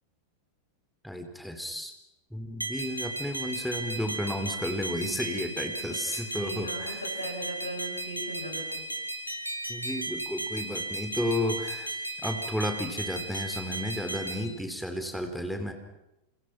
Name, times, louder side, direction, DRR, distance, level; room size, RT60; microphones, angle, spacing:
voice 1, 1.0-1.9 2.3-7.0 9.7-15.7, left 1 dB, ahead, 6 dB, 3.8 m, -33 dB
sound 1, 2.6-14.5, right 2 dB, 85° right, 2.8 m, -35 dB
voice 2, 5.0-5.6 6.1-8.9 14.4-14.6, right 1 dB, 80° left, 3 dB, 7.9 m, -39 dB
30.0 x 29.5 x 6.1 m, 0.90 s
figure-of-eight pair, 90°, 0 cm